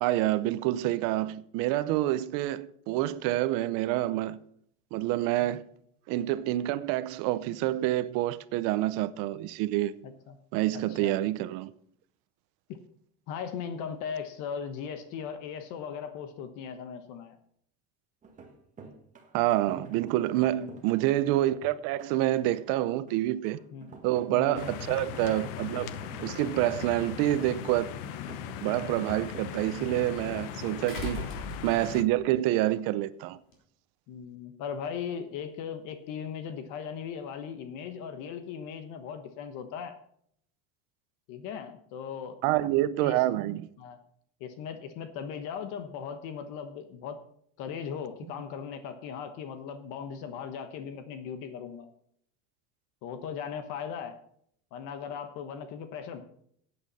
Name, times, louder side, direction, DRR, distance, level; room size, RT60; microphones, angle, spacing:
voice 1, 0.0-4.4 4.9-5.6 6.1-9.9 10.5-11.7 19.3-23.6 24.0-25.9 26.2-27.9 28.6-31.2 31.6-33.4 42.4-43.7, right 15 dB, 65° right, 0.7 m, -27 dB
voice 2, 10.0-10.4 10.7-11.1 13.3-17.4 20.4-20.7 23.7-23.9 24.3-24.6 28.1-28.4 30.9-31.0 34.1-40.0 41.3-42.4 43.0-43.1 43.8-44.0 44.4-47.2 47.6-51.9 53.0-54.2 54.7-56.2, left 7 dB, 60° left, 1.2 m, -38 dB
sound 1, 18.2-31.2, right 4 dB, 20° right, 1.6 m, -49 dB
sound 2, 24.5-32.0, left 9 dB, 85° left, 1.0 m, -39 dB
sound 3, 27.6-27.7 30.9-32.2 33.5-33.6, left 3 dB, 35° left, 3.7 m, -38 dB
14.5 x 8.8 x 4.2 m
cardioid pair, 165°, 35 cm